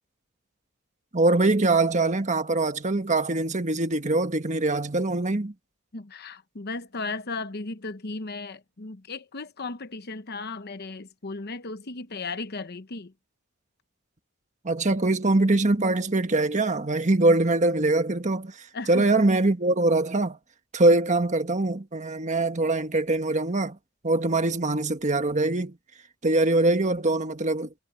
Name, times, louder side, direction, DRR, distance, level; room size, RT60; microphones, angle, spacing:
voice 1, 1.1-5.5 14.6-18.6 18.9-20.4 20.7-23.8 24.0-25.8 26.2-27.7, right 2 dB, 35° right, 1.5 m, -23 dB
voice 2, 5.9-13.1 18.7-19.1, left 3 dB, 50° left, 1.0 m, -35 dB
head